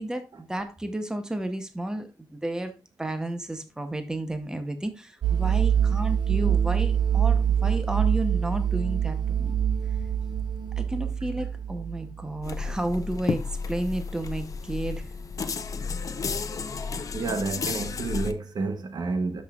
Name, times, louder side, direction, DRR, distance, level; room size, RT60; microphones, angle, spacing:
voice 1, 0.0-9.5 10.8-15.0, right 1 dB, 10° right, 0.8 m, -32 dB
sound 1, 5.2-12.6, right 8 dB, 90° right, 1.1 m, -25 dB
sound 2, 12.4-18.3, left 5 dB, 45° left, 0.6 m, -32 dB
voice 2, 17.1-19.4, right 3 dB, 60° right, 0.9 m, -30 dB
12.5 x 5.2 x 2.3 m
wide cardioid pair, 175°, 8 cm